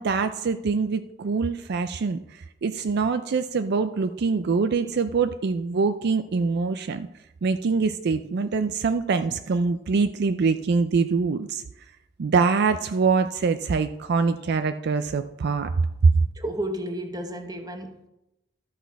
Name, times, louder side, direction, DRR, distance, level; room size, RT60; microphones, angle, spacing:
voice 1, 0.0-7.1 7.4-11.6 12.2-15.7 16.0-16.1, right 4 dB, 55° right, 10 dB, 0.4 m, -24 dB
voice 2, 16.3-18.1, right 1 dB, 20° right, 6 dB, 1.0 m, -32 dB
12.5 x 6.1 x 4.6 m, 0.90 s
head